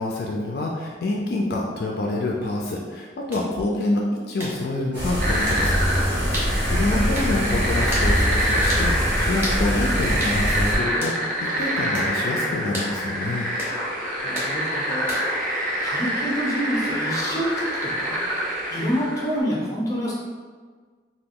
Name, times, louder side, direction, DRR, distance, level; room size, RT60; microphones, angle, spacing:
voice 1, 0.0-5.8 6.3-13.5, left 2 dB, 60° left, -1 dB, 0.3 m, -27 dB
sound 1, 3.3-3.5 4.4-4.6 5.5-5.6 6.3-6.5 7.1-7.3 7.9-8.1 8.7-8.9 9.4-9.6 10.2-10.4 11.0-11.2 11.9-12.1 12.7-12.9 13.6-13.8 14.3-14.5 15.1-15.4, equal, 15° right, 0.8 m, -31 dB
sound 2, 4.9-10.8, equal, 70° right, 1.1 m, -24 dB
sound 3, 5.2-19.4, equal, 50° right, 0.5 m, -26 dB
voice 2, 14.2-15.4 15.8-18.1 18.7-20.1, equal, 20° left, -4 dB, 0.6 m, -27 dB
2.9 x 2.3 x 3.6 m, 1.5 s
head